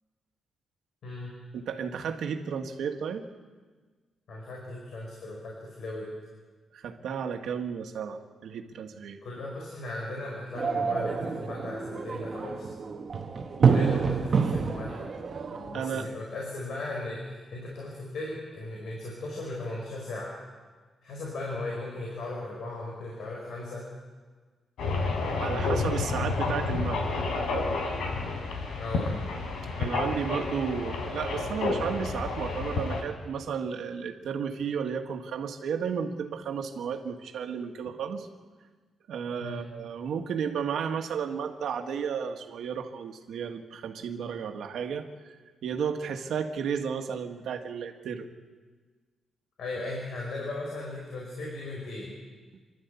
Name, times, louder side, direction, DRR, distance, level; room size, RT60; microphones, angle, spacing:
voice 1, 1.0-1.3 4.3-6.1 9.2-12.7 13.6-15.0 15.5-20.3 21.0-23.8 28.8-29.1 39.4-39.6 49.6-52.1, left 2 dB, 60° left, -2 dB, 5.2 m, -37 dB
voice 2, 1.5-3.2 6.7-9.2 13.6-14.0 15.7-16.1 25.4-27.1 29.8-38.3 39.1-45.0 45.6-48.3, right 7 dB, 70° right, 5 dB, 1.7 m, -33 dB
sound 1, 10.5-15.8, right 5 dB, 35° right, 1.2 m, -27 dB
sound 2, 24.8-33.0, left 3 dB, 90° left, 4.1 m, -30 dB
27.5 x 12.0 x 8.3 m, 1.4 s
wide cardioid pair, 165°, 0 cm